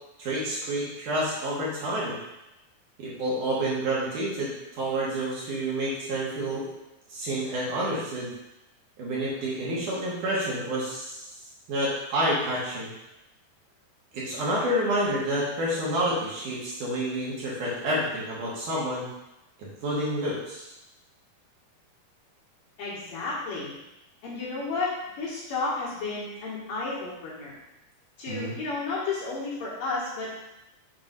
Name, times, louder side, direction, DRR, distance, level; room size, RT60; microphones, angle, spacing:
voice 1, 0.2-2.2 3.0-4.5 4.8-6.7 7.1-8.3 9.0-11.3 11.7-12.9 14.1-19.1 19.6-20.7 28.3-28.5, right 1 dB, 60° right, -6 dB, 2.8 m, -29 dB
voice 2, 22.8-23.7 24.2-27.5 28.2-30.3, left 3 dB, 65° left, -7 dB, 3.2 m, -32 dB
7.4 x 3.6 x 5.3 m, 0.92 s
omnidirectional pair, 4.5 m